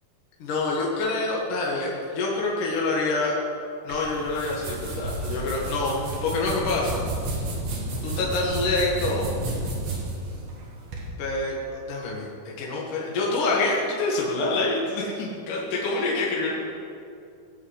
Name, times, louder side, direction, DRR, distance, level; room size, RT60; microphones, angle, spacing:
voice 1, 0.4-3.3 3.8-7.0 8.0-9.3 11.2-11.6 11.9-12.3 12.6-16.5, left 3 dB, 65° left, -4 dB, 3.2 m, -26 dB
sound 1, 3.9-11.1, right 2 dB, 65° right, 3.9 m, -31 dB
19.5 x 7.3 x 8.2 m, 2.5 s
omnidirectional pair, 4.2 m